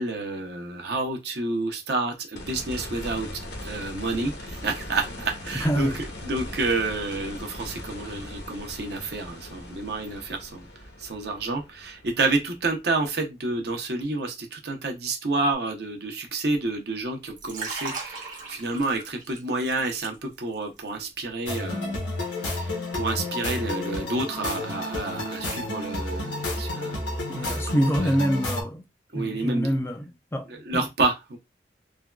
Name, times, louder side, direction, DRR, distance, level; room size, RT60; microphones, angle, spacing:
voice 1, 0.0-10.7 11.0-22.0 22.5-27.0 27.4-28.1 29.1-29.7 30.5-31.4, right 3 dB, 60° right, 0.7 m, -29 dB
sound 1, 2.3-13.3 15.5-15.6, left 1 dB, 65° left, 0.7 m, -39 dB
voice 2, 5.5-6.0 27.3-28.8 29.1-30.5 30.7-30.9, equal, 15° left, 0.4 m, -26 dB
Liquid, 17.2-20.6 20.9-21.2, right 3 dB, 45° right, 1.1 m, -37 dB
sound 2, 21.5-28.6, left 2 dB, 90° left, 1.0 m, -31 dB
3.4 x 2.2 x 2.3 m
head